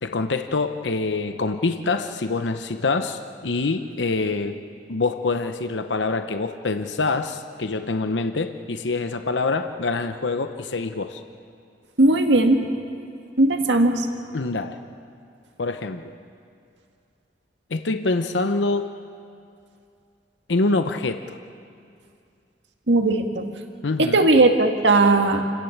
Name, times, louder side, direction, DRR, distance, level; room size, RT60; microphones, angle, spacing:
voice 1, 0.0-4.6 4.9-11.2 14.3-14.8 15.6-16.0 17.7-18.9 20.5-21.4 23.8-24.3, left 3 dB, 85° left, 8 dB, 0.8 m, -25 dB
voice 2, 12.0-12.6 13.4-14.1 22.9-23.5 24.0-25.4, right 2 dB, 80° right, 4 dB, 1.9 m, -18 dB
29.0 x 17.0 x 7.3 m, 2.4 s
head